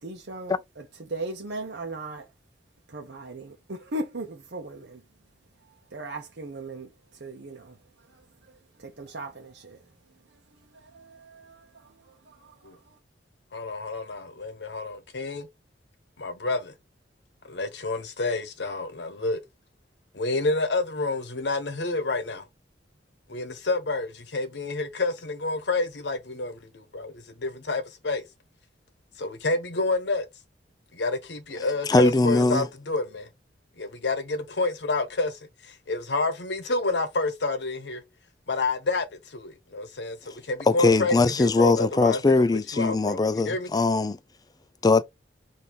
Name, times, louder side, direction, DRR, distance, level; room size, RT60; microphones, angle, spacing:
voice 1, 0.0-2.3 2.9-5.0 5.6-13.0, right 2 dB, 70° right, 0.8 m, -39 dB
voice 2, 13.5-15.5 16.2-16.7 17.5-19.4 20.1-22.5 23.3-28.2 29.2-30.3 30.9-33.3 33.8-38.0 38.5-42.4 42.7-43.2 43.4-43.7, left 3 dB, 75° left, 0.9 m, -29 dB
voice 3, 31.9-32.7 40.7-44.2 44.8-45.0, left 3 dB, 20° left, 0.4 m, -21 dB
5.3 x 2.7 x 2.9 m
head